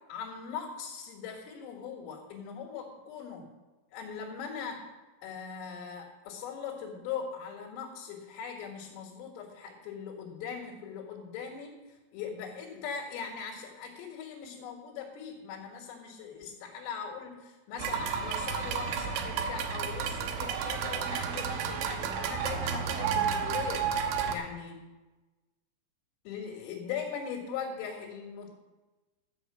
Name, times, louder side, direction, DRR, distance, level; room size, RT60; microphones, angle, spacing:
voice 1, 0.1-3.5 3.9-4.9 5.2-24.8 26.3-28.5, left 6 dB, 80° left, -2 dB, 4.2 m, -40 dB
sound 1, 17.8-24.4, right 7 dB, 80° right, 3.4 m, -32 dB
13.0 x 6.4 x 7.6 m, 1.2 s
omnidirectional pair, 5.7 m